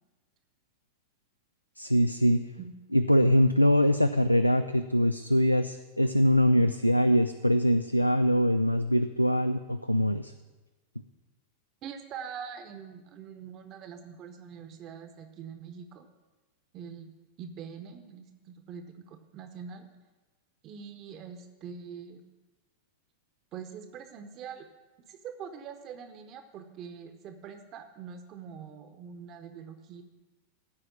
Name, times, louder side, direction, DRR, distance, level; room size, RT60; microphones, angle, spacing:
voice 1, 1.8-2.4 2.9-10.3, equal, 90° left, 10 dB, 0.3 m, -23 dB
voice 2, 11.8-16.1 16.7-17.1 17.4-19.9 20.6-22.2 23.5-24.7 25.1-30.0, right 7 dB, 35° right, 7 dB, 0.8 m, -44 dB
14.5 x 4.9 x 7.3 m, 1.2 s
figure-of-eight pair, 90°, 0 cm